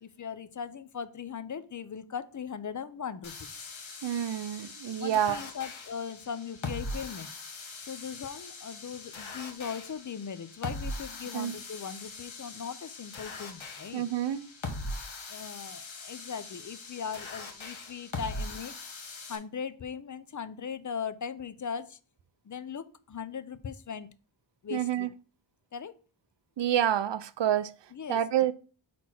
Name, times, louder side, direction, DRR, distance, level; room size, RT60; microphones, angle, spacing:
voice 1, 0.0-3.7 5.0-7.3 7.8-14.1 15.3-18.8 19.3-22.0 22.4-24.1 24.6-25.1 25.7-25.9 27.9-28.5, left 7 dB, 40° left, 0.5 m, -39 dB
sound 1, 3.2-19.4, left 2 dB, 80° left, 1.2 m, -41 dB
voice 2, 4.0-5.4 11.3-11.5 13.9-14.5 24.7-25.1 26.6-27.7 28.1-28.5, right 11 dB, 65° right, 0.6 m, -28 dB
4.5 x 4.3 x 5.8 m
wide cardioid pair, 80°, 47 cm